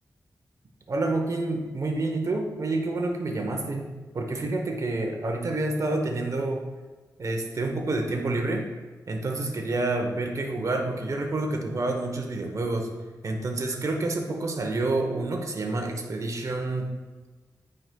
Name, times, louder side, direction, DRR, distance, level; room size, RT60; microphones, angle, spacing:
voice 1, 0.9-3.9 4.1-6.7 7.2-8.7 9.1-12.9 13.2-16.9, right 2 dB, 50° right, 3 dB, 0.8 m, -28 dB
9.0 x 4.8 x 2.2 m, 1.3 s
wide cardioid pair, 90°, 7 cm